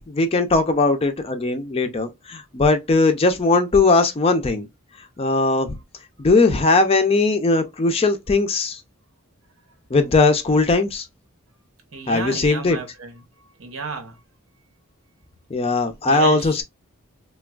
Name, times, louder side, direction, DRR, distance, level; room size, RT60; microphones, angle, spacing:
voice 1, 0.0-4.7 5.2-5.8 6.2-8.8 9.9-11.1 12.1-12.8 15.5-16.6, left 3 dB, 30° left, 0.4 m, -19 dB
voice 2, 11.9-13.2 13.6-14.2 16.0-16.6, right 4 dB, 80° right, 0.9 m, -32 dB
3.3 x 2.2 x 2.2 m
head